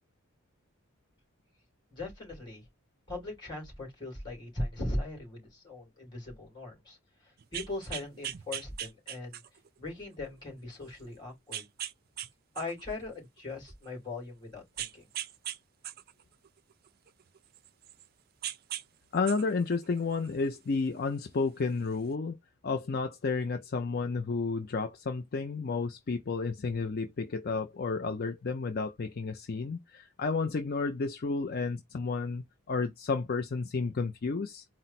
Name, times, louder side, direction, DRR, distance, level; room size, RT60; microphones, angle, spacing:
voice 1, 1.9-2.6 3.1-7.0 7.2-9.4 9.8-11.7 12.5-15.1, left 2 dB, 20° left, 2.9 m, -39 dB
sound 1, 7.4-9.7 10.3-10.4 11.5-12.3 12.6-13.9 14.8-15.6 15.8-18.1 18.4-18.8 19.1-20.6 21.6-21.7, right 11 dB, 45° right, 0.4 m, -39 dB
voice 2, 19.1-22.4 22.6-34.6, left 4 dB, 45° left, 0.5 m, -31 dB
4.3 x 2.0 x 4.1 m
head